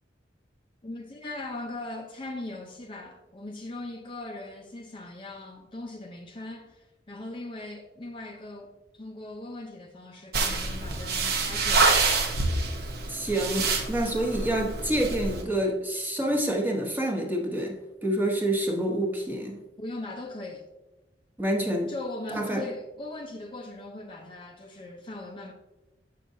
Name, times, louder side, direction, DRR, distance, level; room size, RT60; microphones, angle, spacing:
voice 1, 0.8-11.9 19.8-20.7 21.9-25.5, left 2 dB, 30° left, 0.6 m, -39 dB
sound 1, 10.3-15.4, right 3 dB, 60° right, 0.8 m, -27 dB
voice 2, 13.1-19.6 21.4-21.9 22.3-22.7, right 1 dB, 10° right, 0.9 m, -27 dB
7.4 x 6.0 x 2.7 m
head